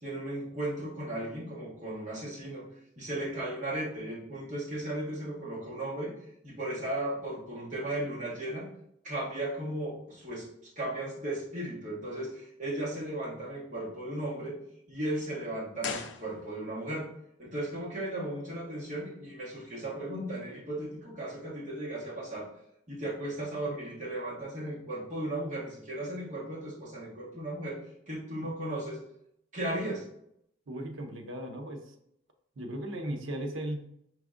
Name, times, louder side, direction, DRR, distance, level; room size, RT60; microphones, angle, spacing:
voice 1, 0.0-2.6 3.0-6.1 6.4-8.7 9.0-10.5 10.8-14.6 14.9-17.1 17.4-22.5 22.9-27.8 28.1-29.0 29.5-30.0, right 1 dB, 40° right, -6 dB, 1.3 m, -36 dB
sound 1, 15.8-16.9 17.1-17.2, left 5 dB, 60° left, 0.4 m, -39 dB
voice 2, 30.7-31.8 32.6-33.8, right 1 dB, 75° right, 4 dB, 0.6 m, -36 dB
4.7 x 3.4 x 2.4 m, 0.75 s
head